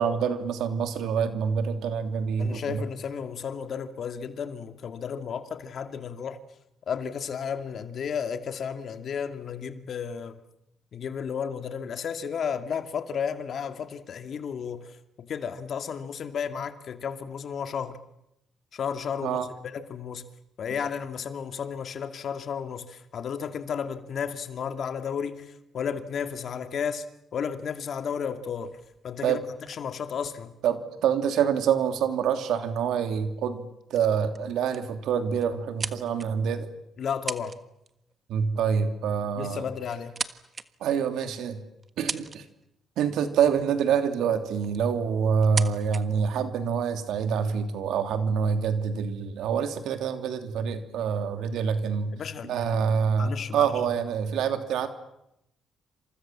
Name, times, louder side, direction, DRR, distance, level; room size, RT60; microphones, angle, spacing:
voice 1, 0.0-2.9 19.2-19.5 29.2-29.4 30.6-36.7 38.3-39.6 40.8-41.6 42.0-42.4 43.0-52.1 52.4-54.9, right 7 dB, 85° right, 3.0 m, -26 dB
voice 2, 2.4-6.4 6.9-10.4 10.9-18.0 18.7-19.4 19.7-20.3 20.6-27.1 27.3-28.8 29.0-30.6 37.0-37.6 39.4-40.2 52.1-52.5 53.2-53.7, left 7 dB, 60° left, 2.4 m, -33 dB
sound 1, 28.6-31.2 32.1-32.2 32.5-32.8 33.4-33.7 33.9-34.0 34.3-34.9 35.4-36.5 37.0-37.6 37.9-38.1 39.2-39.3 39.8-40.6 41.2-41.3 41.8-42.7 44.0-44.1 44.5-44.9 45.4-46.0, right 4 dB, 35° right, 1.5 m, -37 dB
28.5 x 27.0 x 7.5 m
cardioid pair, 90°, 0 cm